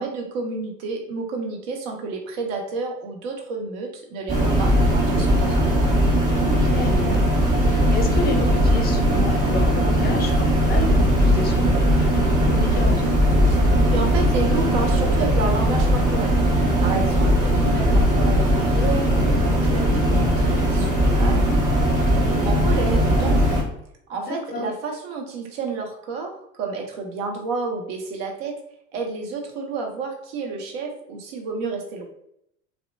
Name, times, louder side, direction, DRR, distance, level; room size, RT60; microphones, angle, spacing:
voice 1, 0.0-5.7 13.5-13.6 13.9-16.4 16.8-21.5 22.1-23.5 24.1-28.6 28.9-32.1, right 4 dB, 65° right, 2 dB, 0.7 m, -30 dB
sound 1, 4.3-23.6, equal, 20° right, 1.4 m, -19 dB
voice 2, 6.4-13.2 24.2-24.7, left 1 dB, 25° left, 3 dB, 0.6 m, -31 dB
2.7 x 2.0 x 2.6 m, 0.75 s
hypercardioid pair, 70°, 36 cm